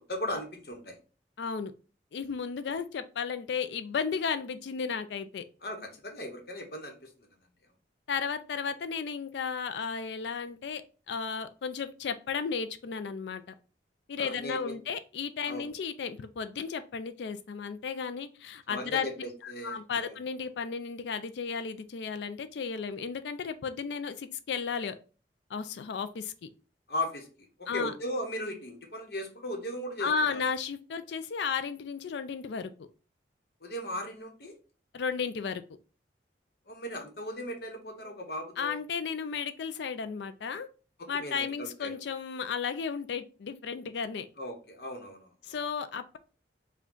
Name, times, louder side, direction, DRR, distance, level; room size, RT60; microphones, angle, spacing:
voice 1, 0.1-1.0 5.6-7.1 14.2-14.7 15.4-15.7 18.7-20.2 26.9-27.3 27.6-30.4 33.6-34.5 36.7-38.8 41.0-41.9 44.4-45.6, left 1 dB, 60° left, 3 dB, 0.9 m, -37 dB
voice 2, 1.4-1.7 2.1-5.4 8.1-10.8 11.1-13.4 14.1-19.1 19.4-25.0 25.5-26.5 27.7-27.9 30.0-32.9 34.9-35.6 38.6-40.7 41.1-44.3 45.5-46.2, left 6 dB, 80° left, 10 dB, 0.4 m, -34 dB
4.9 x 2.2 x 3.7 m, 0.36 s
head